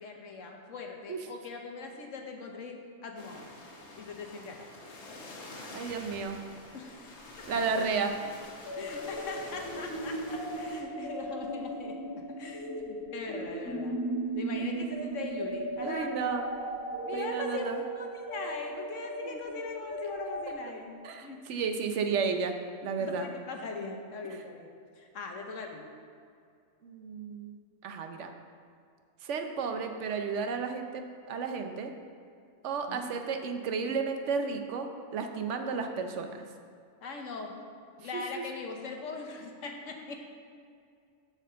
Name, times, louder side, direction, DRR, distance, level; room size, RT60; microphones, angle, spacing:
voice 1, 0.0-3.5 3.9-4.7 6.7-7.5 8.8-12.0 12.4-14.0 14.3-16.1 17.1-20.9 21.2-21.5 23.0-25.9 32.9-33.0 37.0-37.6 38.0-40.3, left 4 dB, 80° left, 3 dB, 1.3 m, -41 dB
sound 1, 3.2-10.8, left 2 dB, 65° left, 1.4 m, -47 dB
voice 2, 5.7-6.4 7.5-8.1 15.8-16.5 17.1-17.8 19.2-19.4 21.0-22.6 22.8-23.3 26.8-28.3 29.2-31.9 32.6-36.4, right 5 dB, 75° right, 6 dB, 1.0 m, -33 dB
sound 2, 8.6-20.5, right 2 dB, 15° left, 1.7 m, -36 dB
7.0 x 4.9 x 6.7 m, 2.3 s
omnidirectional pair, 1.3 m